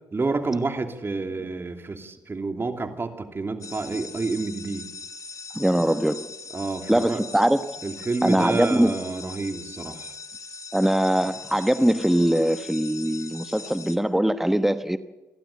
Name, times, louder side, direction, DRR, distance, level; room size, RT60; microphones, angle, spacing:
voice 1, 0.1-4.9 6.5-7.2 7.8-10.1, right 3 dB, 30° right, 2.9 m, -29 dB
sound 1, 3.6-14.0, left 4 dB, 45° left, 2.1 m, -40 dB
voice 2, 5.5-6.3 6.9-7.6 8.2-8.9 10.7-15.0, right 1 dB, 5° right, 1.1 m, -22 dB
28.5 x 12.0 x 8.5 m
cardioid pair, 70°, 8 cm